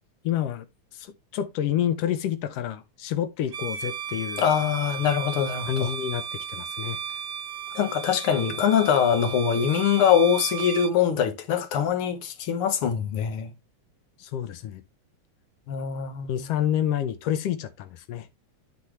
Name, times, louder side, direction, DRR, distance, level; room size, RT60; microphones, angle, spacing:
voice 1, 0.2-0.6 0.9-4.5 5.7-7.0 14.2-14.8 16.3-18.3, left 10 dB, 80° left, 1.4 m, -28 dB
Bowed string instrument, 3.5-11.0, right 7 dB, 75° right, 0.8 m, -35 dB
voice 2, 4.4-5.9 7.8-13.5 15.7-16.3, left 8 dB, 60° left, 1.7 m, -23 dB
12.0 x 4.2 x 3.0 m
omnidirectional pair, 3.4 m